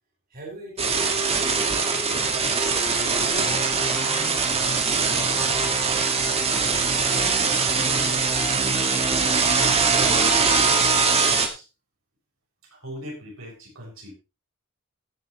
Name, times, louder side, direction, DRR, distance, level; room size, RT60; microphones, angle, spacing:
voice 1, 0.3-2.6, right 1 dB, 45° right, -3 dB, 5.8 m, -42 dB
sound 1, 0.8-11.5, right 4 dB, 30° right, 2.0 m, -22 dB
voice 2, 3.8-10.5 11.2-11.7 12.6-14.1, right 1 dB, 75° right, -2 dB, 6.8 m, -41 dB
17.5 x 8.7 x 3.2 m, 0.28 s
head